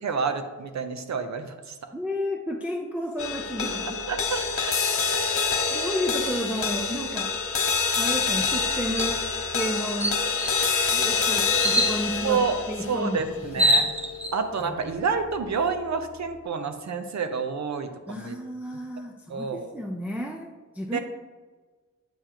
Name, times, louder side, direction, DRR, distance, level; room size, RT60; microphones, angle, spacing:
voice 1, 0.0-1.8 4.1-4.8 12.2-13.9 14.3-18.4 19.3-19.7 20.9-21.0, right 5 dB, 65° right, 8 dB, 0.8 m, -29 dB
voice 2, 1.9-4.1 5.7-7.5 8.0-10.2 10.9-13.3 13.6-13.9 14.6-14.8 18.1-21.0, equal, 5° right, 0 dB, 0.5 m, -32 dB
sound 1, 3.2-15.7, left 5 dB, 45° left, 0.8 m, -27 dB
sound 2, 9.0-9.2 9.6-9.7 10.0-10.6 11.6-12.0 13.1-13.2 13.4-14.3, equal, 20° right, 0.8 m, -23 dB
9.3 x 6.9 x 2.9 m, 1.4 s
wide cardioid pair, 165°, 30 cm